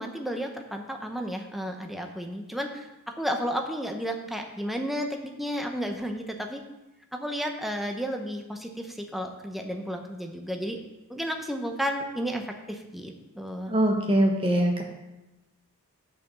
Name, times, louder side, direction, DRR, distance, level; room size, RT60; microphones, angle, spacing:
voice 1, 0.0-2.9 3.2-6.6 7.1-10.8 11.1-13.7, equal, ahead, 3 dB, 0.7 m, -32 dB
voice 2, 13.7-14.8, right 1 dB, 25° right, 1 dB, 1.3 m, -22 dB
6.9 x 5.8 x 6.8 m, 0.99 s
head